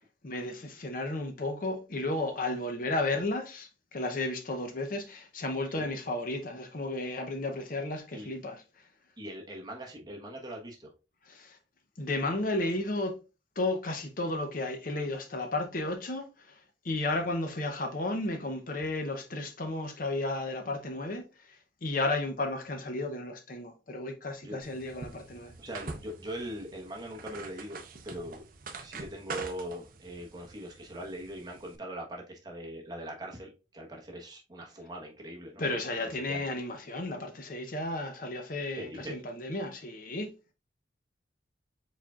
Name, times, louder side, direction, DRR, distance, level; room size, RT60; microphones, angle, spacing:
voice 1, 0.2-8.6 11.3-11.6 12.0-13.2 13.6-16.5 16.8-21.2 21.8-25.5 35.6-40.3, left 2 dB, 45° left, 0.6 m, -33 dB
voice 2, 9.2-10.9 17.2-17.3 24.4-24.6 25.6-28.4 28.8-35.6 36.0-36.5 38.7-39.2, right 1 dB, 20° right, 1.0 m, -41 dB
sound 1, 24.6-31.8, right 3 dB, 45° right, 0.5 m, -45 dB
4.8 x 4.2 x 2.3 m
head